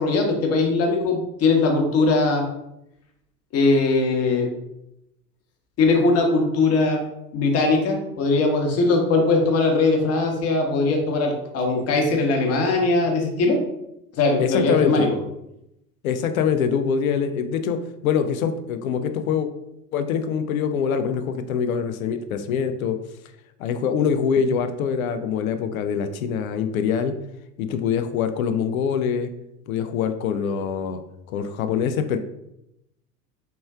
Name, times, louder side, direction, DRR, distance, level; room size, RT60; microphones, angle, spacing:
voice 1, 0.0-2.4 3.5-4.5 5.8-7.0 7.3-13.6 14.1-15.2, left 3 dB, 30° left, 1 dB, 0.9 m, -20 dB
voice 2, 14.4-15.1 16.0-19.5 19.9-23.0 23.6-27.1 27.6-29.3 29.7-31.0 31.3-32.2, left 7 dB, 60° left, 8 dB, 0.5 m, -24 dB
4.4 x 3.0 x 2.3 m, 0.85 s
figure-of-eight pair, 85°, 49 cm